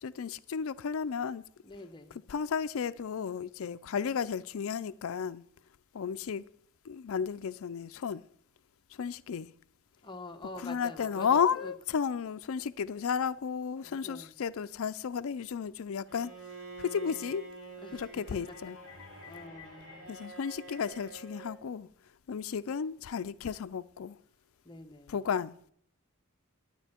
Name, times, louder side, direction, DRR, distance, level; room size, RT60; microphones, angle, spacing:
voice 1, 0.0-1.4 2.3-5.4 5.9-6.4 6.9-8.2 9.0-9.5 10.5-16.3 16.8-17.4 17.9-19.7 20.1-21.9 22.3-24.2 25.1-25.6, left 6 dB, 65° left, 0.4 m, -33 dB
voice 2, 1.6-2.2 10.0-11.7 13.8-14.3 17.8-18.1 19.1-20.1 24.6-25.2, left 2 dB, 20° left, 0.9 m, -46 dB
Bowed string instrument, 16.1-21.6, right 2 dB, 80° right, 5.1 m, -47 dB
11.0 x 9.7 x 4.4 m
head